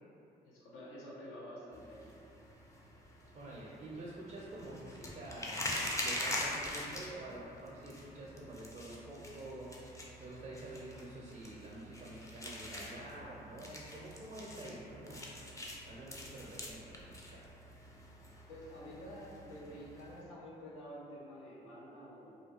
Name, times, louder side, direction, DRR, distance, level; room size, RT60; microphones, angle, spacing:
voice 1, 0.4-2.2 18.5-22.4, equal, 70° left, -6 dB, 0.6 m, -49 dB
sound 1, 1.7-20.2, left 1 dB, 15° left, 0.5 m, -44 dB
voice 2, 3.3-5.7 6.0-15.3 15.9-17.4, right 1 dB, 35° right, -5 dB, 0.5 m, -48 dB
2.4 x 2.3 x 2.3 m, 2.6 s
hypercardioid pair, 45°, 21 cm